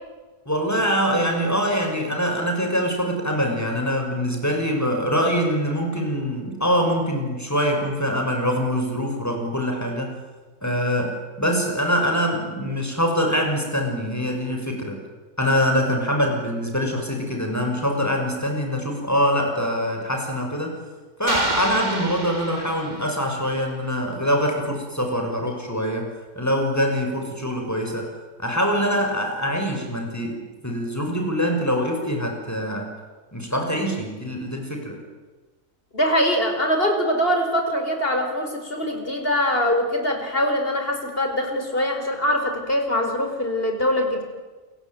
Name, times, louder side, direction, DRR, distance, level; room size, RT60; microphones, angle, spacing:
voice 1, 0.4-10.2 10.6-15.0 15.4-20.7 21.2-26.1 26.3-28.1 28.4-32.9 33.3-35.0, equal, 10° left, 2 dB, 6.4 m, -24 dB
sound 1, 21.3-23.4, right 2 dB, 30° right, 2.3 m, -30 dB
voice 2, 35.9-44.2, equal, 40° left, 4 dB, 5.2 m, -23 dB
28.5 x 23.0 x 9.2 m, 1.3 s
omnidirectional pair, 1.4 m